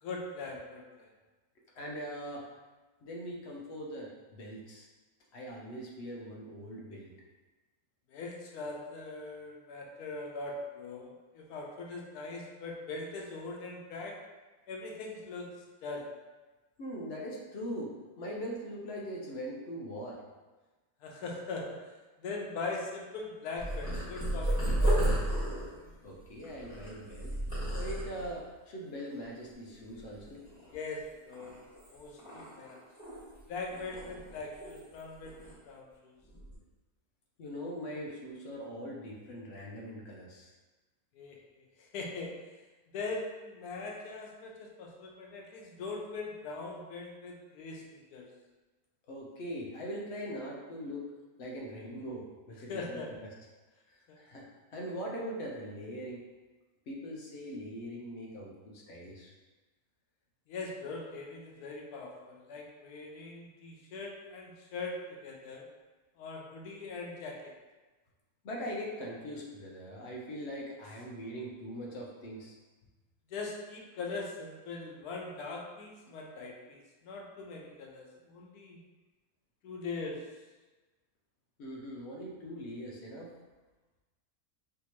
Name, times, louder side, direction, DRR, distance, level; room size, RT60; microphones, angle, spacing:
voice 1, 0.0-1.1 8.1-14.2 14.7-15.5 15.8-16.1 21.0-21.7 22.2-25.3 30.7-31.6 31.9-32.8 33.5-36.1 41.1-41.4 41.9-42.3 42.9-48.3 52.7-53.1 54.1-54.2 60.5-65.6 66.2-67.5 73.3-78.8 79.6-80.2, left 3 dB, 90° left, 0 dB, 1.1 m, -41 dB
voice 2, 1.8-2.5 3.0-4.9 5.3-7.1 16.8-20.2 26.0-27.3 27.7-30.4 37.4-40.5 49.1-51.1 51.4-53.3 53.9-54.5 54.7-56.2 56.9-59.3 68.4-72.5 81.6-83.3, equal, 55° left, -2 dB, 0.8 m, -41 dB
Purr, 23.6-28.4 29.0-29.5 29.7-30.9 31.3-33.4 33.7-35.0 35.2-35.6 36.2-36.5, right 1 dB, 5° right, 1.3 m, -33 dB
3.4 x 2.8 x 2.9 m, 1.2 s
omnidirectional pair, 1.6 m